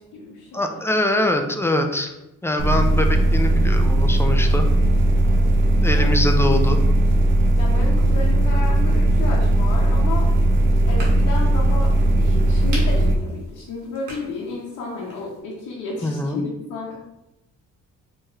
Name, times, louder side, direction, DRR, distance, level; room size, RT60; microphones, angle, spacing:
voice 1, 0.0-0.7 5.2-5.6 5.9-6.1 7.6-10.3 10.9-11.9 12.2-17.0, left 3 dB, 80° left, -5 dB, 0.8 m, -32 dB
voice 2, 0.5-2.1 2.4-4.7 5.8-6.8 16.0-16.4, left 1 dB, 10° left, 4 dB, 0.3 m, -23 dB
sound 1, 2.6-13.2, right 1 dB, 40° right, 0.6 m, -18 dB
sound 2, 10.1-15.4, right 1 dB, 85° right, 1.4 m, -41 dB
4.4 x 3.1 x 2.4 m, 0.95 s
cardioid pair, 90°, 30 cm